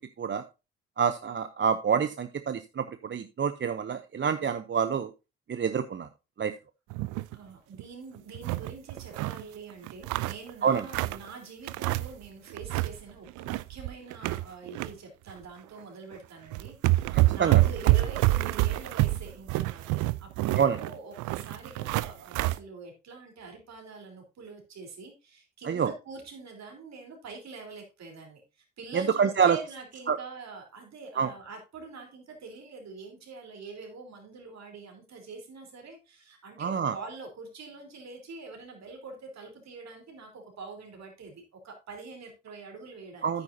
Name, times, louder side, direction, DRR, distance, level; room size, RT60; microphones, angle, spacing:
voice 1, 1.0-5.1 5.5-6.1 6.4-6.5 10.6-10.8 17.1-17.6 20.6-20.8 25.6-25.9 28.9-29.6 30.1-30.2 31.2-31.3 36.6-37.0 43.2-43.4, right 7 dB, 40° right, 11 dB, 0.7 m, -27 dB
sound 1, 6.9-7.4 7.7-7.8 8.1-9.4 9.8-11.3 11.7-12.3 12.5-13.0 13.3-14.9 15.3-15.4 16.1-16.2 16.5-22.6, right 18 dB, 75° right, 0.5 m, -27 dB
voice 2, 7.3-43.4, right 4 dB, 60° right, 3 dB, 3.8 m, -45 dB
9.5 x 9.4 x 2.7 m, 0.27 s
hypercardioid pair, 55°, 31 cm